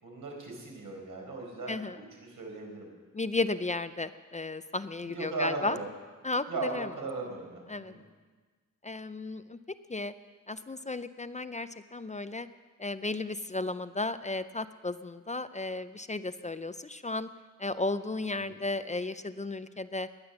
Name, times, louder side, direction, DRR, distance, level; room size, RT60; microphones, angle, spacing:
voice 1, 0.0-2.1 2.4-2.9 5.1-5.9 6.5-8.0 18.3-18.5, right 3 dB, 90° right, 0 dB, 4.5 m, -37 dB
voice 2, 1.7-2.0 3.1-5.8 6.2-6.9 7.7-7.9 8.8-9.6 9.9-10.1 10.5-12.5 12.8-17.3 17.6-20.1, left 2 dB, 25° left, 12 dB, 0.4 m, -34 dB
19.5 x 10.5 x 7.0 m, 1.4 s
wide cardioid pair, 165°, 32 cm